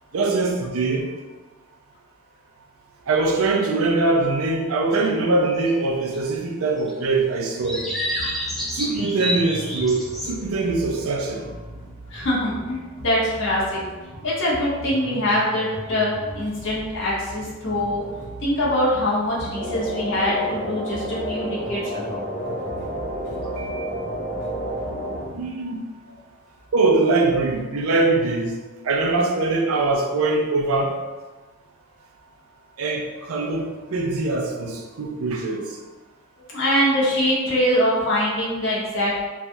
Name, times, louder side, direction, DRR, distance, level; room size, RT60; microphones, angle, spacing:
voice 1, 0.1-1.1 3.1-7.8 8.7-11.5 23.6-23.9 25.3-25.9 26.7-28.5 28.8-30.9 32.8-35.7, right 3 dB, 75° right, 1 dB, 0.5 m, -22 dB
sound 1, 5.7-5.8 6.0-6.2 6.8-7.2 7.6-10.5 10.8-11.1, equal, ahead, 0.5 m, -29 dB
sound 2, 7.6-25.5, equal, 40° left, 1.4 m, -40 dB
voice 2, 12.1-13.8 14.2-16.1 16.3-18.0 18.4-22.2 36.5-39.2, equal, 60° left, -6 dB, 1.0 m, -23 dB
sound 3, 19.5-25.2, equal, 55° right, 0.9 m, -30 dB
3.2 x 2.3 x 2.6 m, 1.3 s
head